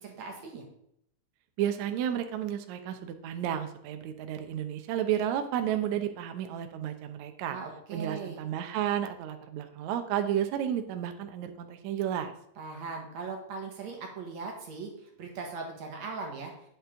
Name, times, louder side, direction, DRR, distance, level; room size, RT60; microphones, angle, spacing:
voice 1, 0.0-0.6 7.5-8.4 12.6-16.5, right 4 dB, 60° right, 1 dB, 2.3 m, -39 dB
voice 2, 1.6-7.6 7.9-12.3, right 10 dB, 90° right, 7 dB, 1.6 m, -32 dB
8.4 x 8.3 x 3.7 m, 0.74 s
omnidirectional pair, 4.4 m